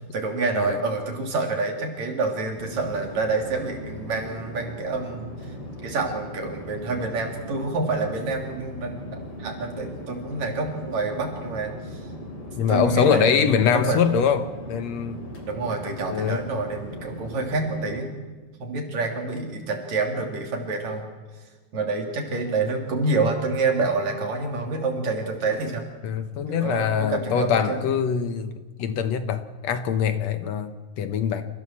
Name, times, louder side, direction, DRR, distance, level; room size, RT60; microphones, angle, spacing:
voice 1, 0.1-5.5 5.8-12.1 12.7-14.0 15.4-18.1 18.6-21.1 21.7-25.8 26.5-27.8, right 3 dB, 65° right, 2 dB, 4.1 m, -27 dB
Chatter / Fixed-wing aircraft airplane, 2.6-18.0, equal, 45° left, 4.0 m, -38 dB
voice 2, 12.6-15.3 16.1-16.4 26.0-31.5, left 7 dB, 70° left, 9 dB, 2.0 m, -23 dB
28.5 x 15.5 x 7.4 m, 1.3 s
omnidirectional pair, 3.5 m